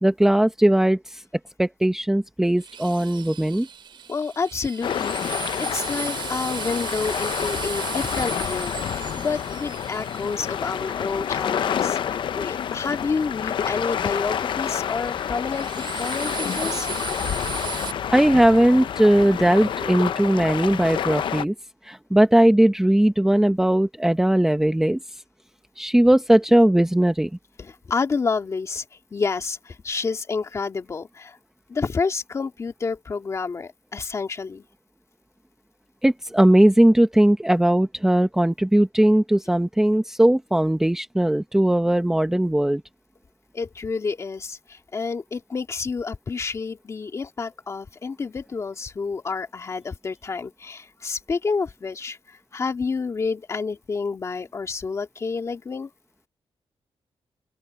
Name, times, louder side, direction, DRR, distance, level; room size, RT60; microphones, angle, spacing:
voice 1, 0.0-1.2 1.6-3.7 18.1-21.5 21.8-25.0 25.8-27.3 36.0-42.8, right 1 dB, 5° right, 0.9 m, -19 dB
Drill, 2.6-11.5 14.9-17.9, right 8 dB, 60° right, 5.3 m, -36 dB
voice 2, 4.1-16.9 17.6-17.8 27.6-28.8 29.1-31.4 31.7-34.6 43.5-55.9, left 4 dB, 30° left, 2.3 m, -29 dB
sound 1, 4.8-21.4, left 9 dB, 60° left, 0.7 m, -28 dB
open air
wide cardioid pair, 180°, 9 cm